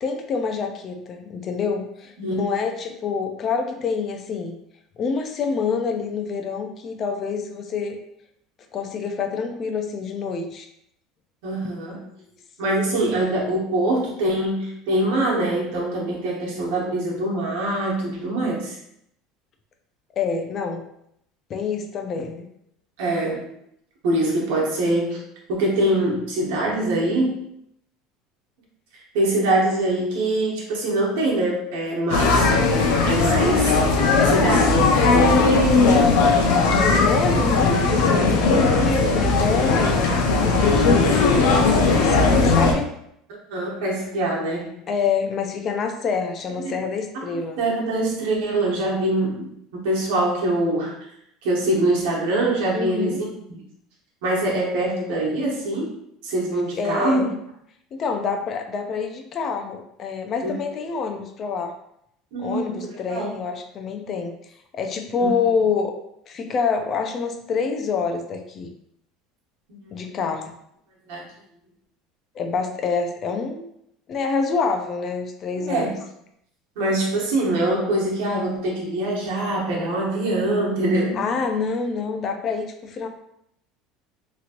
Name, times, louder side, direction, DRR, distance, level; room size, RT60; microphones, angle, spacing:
voice 1, 0.0-4.6 5.0-8.0 8.7-10.7 20.2-20.9 21.5-22.5 34.1-39.9 40.4-41.7 42.0-42.9 44.9-47.6 52.7-53.2 56.8-57.3 57.9-61.7 62.4-64.4 64.7-65.9 66.3-68.7 69.9-70.5 72.3-73.6 74.1-76.0 81.1-83.1, left 5 dB, 30° left, 5 dB, 0.3 m, -27 dB
voice 2, 11.4-12.0 12.6-18.8 23.0-23.5 24.0-25.2 25.5-27.5 29.1-32.6 33.0-34.7 35.1-35.4 43.5-44.8 46.6-46.8 47.1-51.0 51.4-53.3 54.2-55.9 56.2-57.3 60.4-60.5 62.3-63.3 65.2-65.3 69.8-70.0 71.1-71.3 75.6-76.0 76.8-81.2, right 1 dB, 80° right, -3 dB, 1.0 m, -24 dB
sound 1, 32.1-42.7, left 3 dB, 90° left, 0.6 m, -18 dB
2.9 x 2.8 x 2.5 m, 0.74 s
cardioid pair, 165°, 0 cm